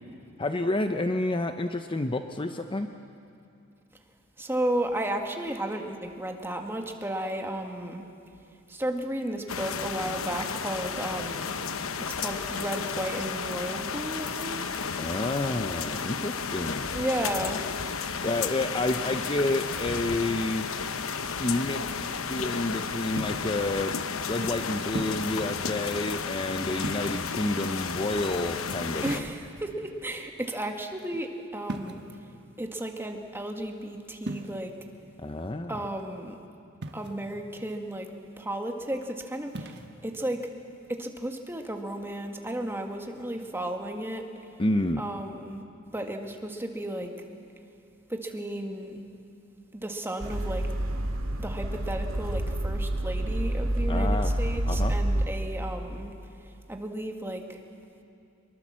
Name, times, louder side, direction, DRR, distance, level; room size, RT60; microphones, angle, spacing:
voice 1, 0.4-2.9 15.0-16.9 18.2-20.7 21.4-23.9 24.3-29.2 35.2-35.8 44.6-45.0 53.9-54.4 54.7-54.9, left 2 dB, 25° left, 7 dB, 0.7 m, -29 dB
voice 2, 4.4-8.0 8.7-11.6 12.0-14.7 16.9-17.6 29.0-32.0 32.6-34.7 35.7-36.4 36.9-38.1 38.4-40.4 40.9-44.2 45.0-45.6 45.9-47.1 48.1-49.0 49.7-50.7 51.4-56.1 56.4-57.6, right 1 dB, 10° right, 3 dB, 1.7 m, -33 dB
sound 1, 9.5-29.2, left 5 dB, 80° left, 1.0 m, -33 dB
sound 2, 23.2-23.6 24.9-25.4 26.8-27.4 29.0-29.8 31.6-32.2 34.2-34.5 36.8-37.3 39.5-39.9, right 1 dB, 55° right, 1.3 m, -37 dB
sound 3, 50.2-55.3, right 1 dB, 75° right, 2.1 m, -28 dB
24.0 x 22.5 x 7.5 m, 2.5 s
head